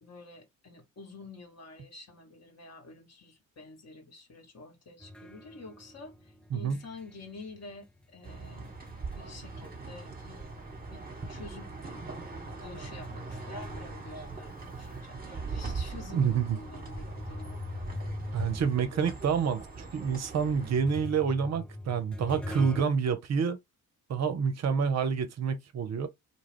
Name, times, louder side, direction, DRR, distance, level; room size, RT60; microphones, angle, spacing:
voice 1, 0.0-10.5 10.9-12.1 12.5-17.9, left 3 dB, 35° left, 1.1 m, -49 dB
sound 1, 5.0-10.0 10.3-15.0 15.6-15.7 16.4-22.8, left 1 dB, ahead, 0.6 m, -43 dB
sound 2, 8.2-20.8, right 3 dB, 20° right, 1.1 m, -41 dB
voice 2, 16.1-16.6 18.3-19.6 19.9-23.6 24.1-26.1, right 6 dB, 40° right, 0.6 m, -28 dB
2.3 x 2.0 x 3.3 m
hypercardioid pair, 45°, 42 cm